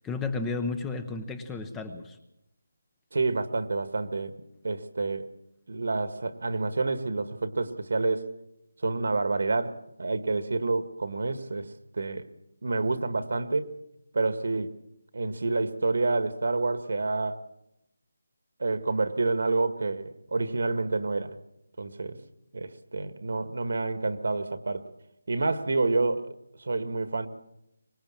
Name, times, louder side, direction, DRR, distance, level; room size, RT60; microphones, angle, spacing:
voice 1, 0.0-2.2, left 4 dB, 5° left, 9 dB, 0.9 m, -33 dB
voice 2, 3.1-4.3 4.6-5.3 5.7-8.3 8.8-12.3 12.6-13.7 14.1-14.7 15.1-17.4 18.6-21.4 21.8-22.2 22.5-24.9 25.3-26.3 26.6-27.3, right 3 dB, 60° right, 12 dB, 1.8 m, -28 dB
24.5 x 20.5 x 7.4 m, 0.84 s
figure-of-eight pair, 170°, 0 cm